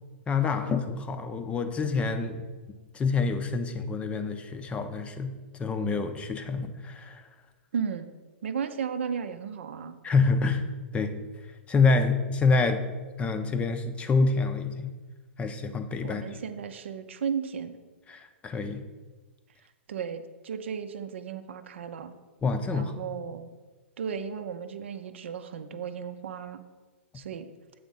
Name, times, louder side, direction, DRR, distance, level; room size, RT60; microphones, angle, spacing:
voice 1, 0.3-2.5 2.9-5.3 5.6-7.3 10.0-10.6 10.9-11.1 11.7-12.8 13.2-14.9 15.4-16.2 18.1-18.8 22.4-22.9, left 4 dB, 20° left, 8 dB, 0.5 m, -27 dB
voice 2, 7.7-8.1 8.4-10.0 16.0-17.7 19.9-22.1 22.7-23.5 24.0-26.6 27.1-27.5, right 7 dB, 70° right, 9 dB, 0.6 m, -34 dB
7.7 x 3.6 x 5.3 m, 1.3 s
hypercardioid pair, 120°, 7 cm